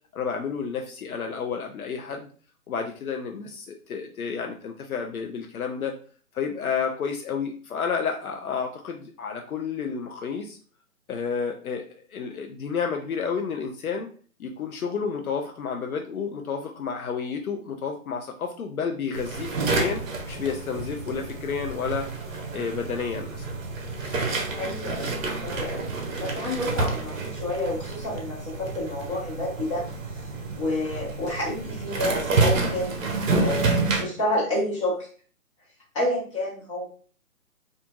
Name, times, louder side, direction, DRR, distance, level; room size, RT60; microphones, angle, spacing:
voice 1, 0.1-2.3 2.7-6.0 6.3-10.6 11.1-11.8 12.1-14.1 14.4-20.0 20.3-22.1 22.5-23.5, left 6 dB, 75° left, 3 dB, 0.6 m, -30 dB
sound 1, 19.1-34.0, right 3 dB, 60° right, 0.7 m, -29 dB
voice 2, 24.5-25.1 25.4-25.8 26.2-29.8 30.5-32.9 33.4-35.1 35.9-36.8, left 1 dB, 20° left, -7 dB, 1.2 m, -29 dB
2.8 x 2.5 x 2.4 m, 0.42 s
figure-of-eight pair, 150°, 44 cm